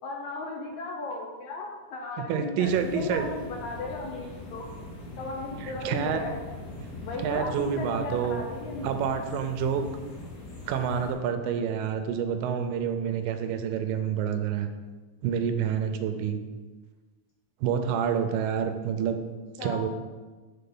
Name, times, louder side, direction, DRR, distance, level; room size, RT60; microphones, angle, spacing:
voice 1, 0.0-4.7 5.2-6.3 7.0-8.9 19.6-19.9, left 3 dB, 75° left, 0 dB, 1.7 m, -36 dB
voice 2, 2.3-3.2 5.6-6.2 7.2-8.4 8.8-9.8 10.7-14.7 15.2-16.4 17.6-19.2 19.6-19.9, right 7 dB, 85° right, 7 dB, 2.3 m, -28 dB
sound 1, 2.6-11.1, left 2 dB, 50° left, 3.1 m, -41 dB
6.8 x 4.3 x 5.4 m, 1.3 s
omnidirectional pair, 3.9 m